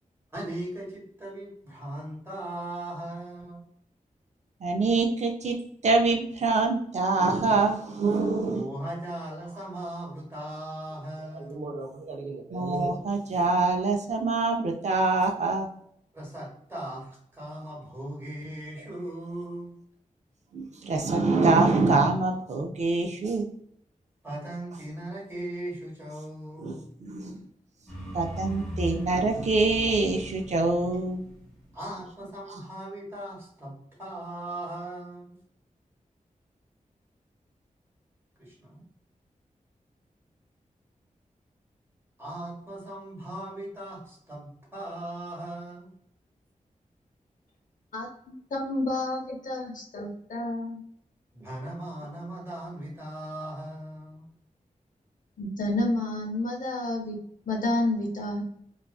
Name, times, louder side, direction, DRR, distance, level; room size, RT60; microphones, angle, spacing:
voice 1, 0.3-3.7 8.5-11.7 16.1-19.7 24.2-26.8 31.7-35.4 38.4-38.8 42.2-45.9 51.3-54.3, right 1 dB, 20° right, -4 dB, 1.1 m, -38 dB
voice 2, 4.6-5.6 5.8-8.7 11.3-15.7 20.5-23.5 26.6-27.4 28.1-31.3, right 3 dB, 55° right, 2 dB, 0.4 m, -25 dB
sound 1, 27.9-32.0, equal, 5° left, 0.9 m, -39 dB
voice 3, 48.5-50.8 55.4-57.2 57.5-58.4, left 1 dB, 75° left, 1 dB, 0.6 m, -29 dB
2.4 x 2.3 x 2.2 m, 0.69 s
wide cardioid pair, 105°, 14 cm